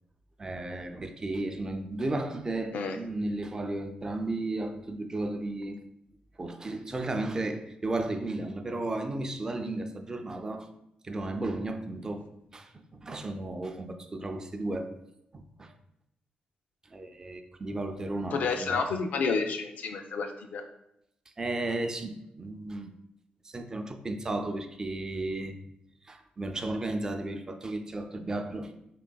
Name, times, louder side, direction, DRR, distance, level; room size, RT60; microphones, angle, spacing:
voice 1, 0.4-5.8 6.4-10.7 11.0-12.3 12.5-14.9 15.3-15.7 16.9-18.8 21.4-22.9 23.4-25.5 26.1-28.7, right 2 dB, 25° right, 6 dB, 0.3 m, -34 dB
voice 2, 18.3-20.6, left 4 dB, 70° left, 6 dB, 0.4 m, -30 dB
3.7 x 3.3 x 2.2 m, 0.79 s
cardioid pair, 125°, 3 cm